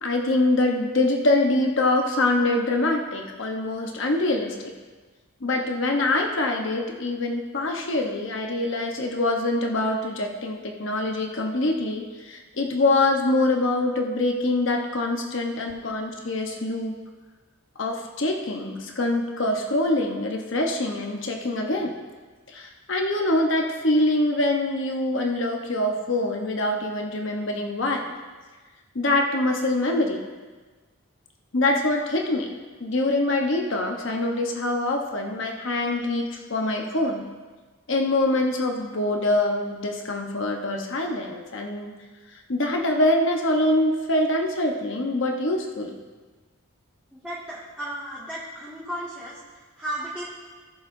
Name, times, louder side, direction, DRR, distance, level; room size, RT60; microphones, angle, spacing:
voice 1, 0.0-4.7 5.4-17.0 17.8-21.9 22.5-28.1 28.9-30.3 31.5-32.5 32.8-37.3 37.9-41.9 42.5-46.0, left 2 dB, 60° left, 2 dB, 1.0 m, -24 dB
voice 2, 47.1-50.3, right 1 dB, 5° right, -11 dB, 1.8 m, -35 dB
18.0 x 7.1 x 2.6 m, 1.4 s
head